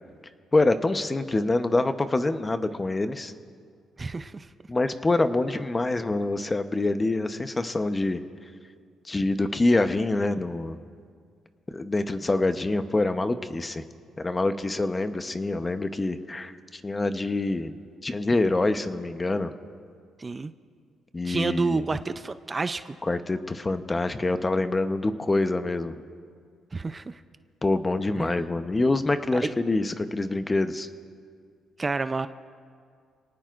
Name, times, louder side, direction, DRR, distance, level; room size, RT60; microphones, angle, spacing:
voice 1, 0.5-3.3 4.7-8.2 9.1-10.8 11.7-13.8 14.2-17.7 18.0-19.5 21.1-21.8 23.0-25.9 27.6-30.9, left 2 dB, 20° left, 9 dB, 0.9 m, -25 dB
voice 2, 4.0-4.5 20.2-20.5 21.2-23.0 26.7-27.2 28.2-28.4 29.4-29.5 31.8-32.3, right 3 dB, 25° right, 11 dB, 0.5 m, -29 dB
29.5 x 18.5 x 2.5 m, 2.1 s
cardioid pair, 90°, 0 cm